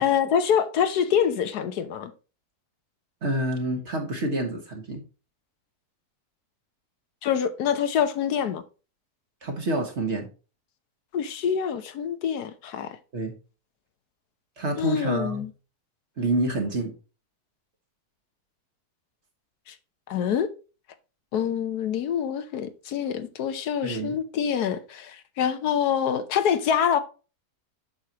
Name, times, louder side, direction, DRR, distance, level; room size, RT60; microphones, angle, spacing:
voice 1, 0.0-2.1 7.2-8.6 11.1-13.0 14.8-15.5 19.7-19.8 20.1-20.5 21.3-27.0, left 8 dB, 75° left, 1.3 m, -25 dB
voice 2, 3.2-5.0 9.4-10.3 13.1-13.3 14.6-15.4 16.2-16.9 23.8-24.2, right 1 dB, 45° right, 1.7 m, -27 dB
8.3 x 6.4 x 2.9 m
omnidirectional pair, 1.7 m